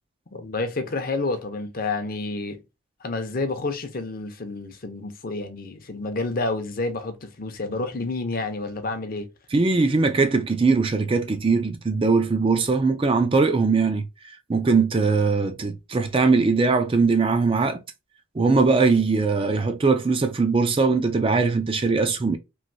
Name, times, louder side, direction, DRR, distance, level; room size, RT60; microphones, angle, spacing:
voice 1, 0.3-2.6 3.0-9.3, left 3 dB, 40° left, 0.6 m, -29 dB
voice 2, 9.5-17.8 18.4-22.4, right 4 dB, 25° right, 0.3 m, -21 dB
3.1 x 2.6 x 2.6 m
head